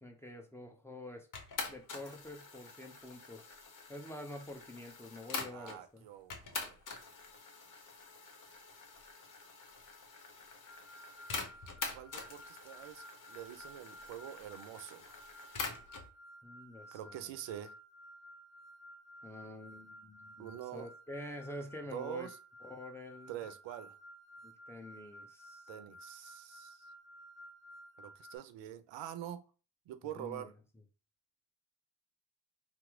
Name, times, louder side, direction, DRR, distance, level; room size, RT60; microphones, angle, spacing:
voice 1, 0.0-1.3 1.7-3.6 3.9-6.1 16.4-17.4 19.2-22.3 22.6-23.4 24.4-25.6 30.0-30.5, left 1 dB, 5° left, 0.8 m, -47 dB
sound 1, 1.3-5.8 6.3-16.1, left 4 dB, 45° left, 0.9 m, -45 dB
voice 2, 5.5-6.8 11.9-15.2 16.9-17.7 20.4-20.9 21.9-22.4 23.3-23.9 25.7-26.9 28.0-29.4 29.9-30.5, right 11 dB, 70° right, 0.5 m, -45 dB
sound 2, 10.7-28.4, equal, 70° left, 0.7 m, -55 dB
2.9 x 2.0 x 3.6 m
supercardioid pair, 50°, 46 cm